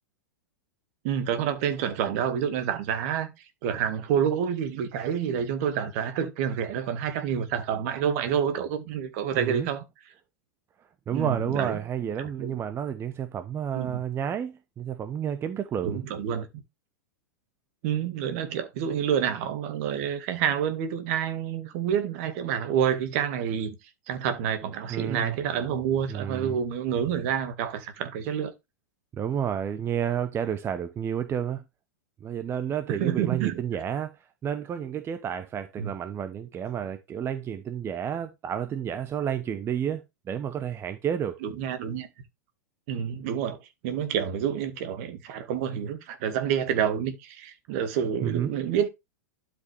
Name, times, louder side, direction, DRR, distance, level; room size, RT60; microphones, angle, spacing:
voice 1, 1.0-3.3 3.6-9.8 11.1-11.8 12.2-12.6 13.7-14.0 15.8-16.5 17.8-23.8 24.1-28.5 32.9-33.6 35.8-35.9 41.4-42.1 42.9-48.9, right 8 dB, 50° right, 2.0 m, -28 dB
voice 2, 9.3-9.7 11.1-16.0 24.9-25.3 26.1-26.6 29.2-31.6 32.2-34.1 34.4-41.4 48.2-48.5, right 9 dB, 25° right, 0.9 m, -30 dB
12.0 x 5.2 x 3.4 m
figure-of-eight pair, 100°, 10 cm